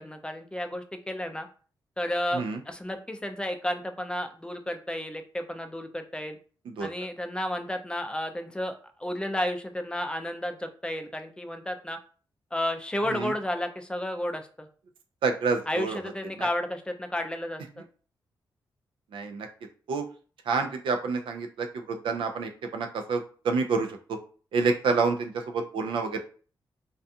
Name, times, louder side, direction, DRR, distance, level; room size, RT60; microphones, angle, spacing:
voice 1, 0.0-1.5 2.0-6.4 6.8-12.0 12.5-14.7 15.7-17.9, left 1 dB, 10° left, 5 dB, 0.4 m, -32 dB
voice 2, 15.2-16.0 16.4-16.5 19.1-19.5 19.9-20.0 20.5-24.0 24.5-26.2, right 4 dB, 85° right, 5 dB, 0.4 m, -28 dB
2.4 x 2.3 x 2.6 m, 0.40 s
cardioid pair, 85°, 8 cm